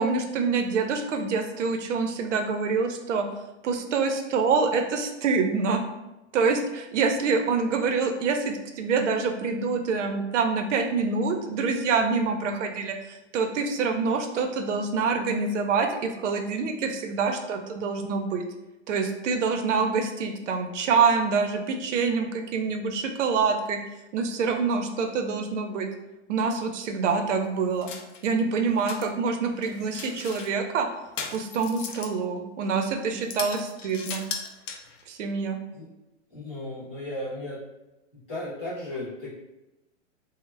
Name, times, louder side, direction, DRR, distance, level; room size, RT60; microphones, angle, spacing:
voice 1, 0.0-3.3 3.6-5.8 6.3-18.4 18.9-23.8 24.1-25.9 26.3-27.9 28.2-30.9 31.3-34.2 35.1-35.6, right 5 dB, 75° right, 5 dB, 0.5 m, -26 dB
sound 1, 27.8-28.3 28.7-29.1 29.6-30.5 31.2-32.2 32.7-32.8 33.3-35.0, left 5 dB, 85° left, 0.5 m, -37 dB
voice 2, 36.3-37.6 38.3-39.3, left 1 dB, 10° left, -15 dB, 0.3 m, -35 dB
2.1 x 2.0 x 3.2 m, 0.96 s
supercardioid pair, 175°, 37 cm